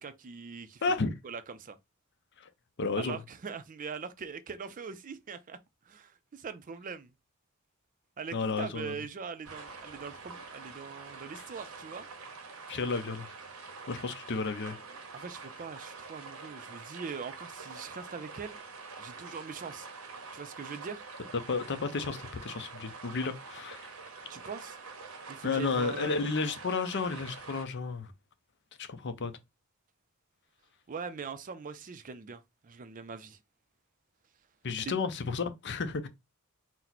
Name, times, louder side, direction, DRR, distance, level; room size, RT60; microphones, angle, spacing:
voice 1, 0.0-0.8 1.2-1.8 3.0-5.6 5.9-7.1 8.2-12.1 15.1-18.6 19.0-19.9 20.3-21.0 24.3-24.8 25.3-26.1 30.9-33.4 34.8-35.0, right 5 dB, 40° right, 0.4 m, -42 dB
voice 2, 0.8-1.2 2.8-3.2 8.3-8.9 12.7-13.3 13.9-14.8 21.5-23.9 25.4-28.1 28.8-29.3 34.6-36.1, left 4 dB, 55° left, 0.6 m, -32 dB
sound 1, 9.4-27.7, right 4 dB, 80° right, 0.9 m, -46 dB
4.3 x 2.1 x 4.0 m
head